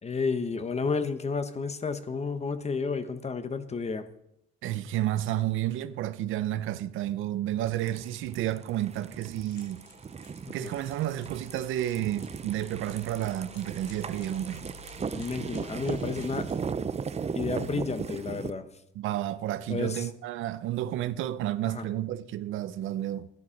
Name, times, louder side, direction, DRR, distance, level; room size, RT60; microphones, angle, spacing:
voice 1, 0.0-4.1 10.5-10.7 15.1-16.4 17.3-18.6 19.7-20.0 21.6-21.8, left 4 dB, 35° left, 1.2 m, -31 dB
voice 2, 4.6-9.8 10.5-14.7 18.9-23.3, right 13 dB, 85° right, 0.7 m, -31 dB
sound 1, 7.7-18.5, right 6 dB, 30° right, 0.6 m, -37 dB
sound 2, 9.4-16.5, left 2 dB, 90° left, 2.8 m, -52 dB
13.0 x 10.5 x 5.2 m
cardioid pair, 90°, 20 cm